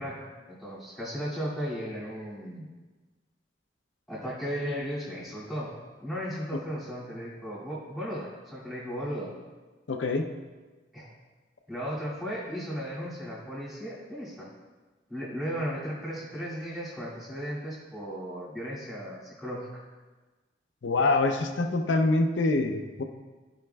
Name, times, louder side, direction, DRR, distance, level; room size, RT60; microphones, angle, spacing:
voice 1, 0.0-2.6 4.1-9.3 10.9-11.1 11.7-14.5 15.1-19.7, equal, ahead, -9 dB, 2.3 m, -35 dB
voice 2, 9.9-10.3 20.8-23.0, left 2 dB, 85° left, 5 dB, 0.6 m, -25 dB
14.0 x 5.0 x 2.3 m, 1.3 s
head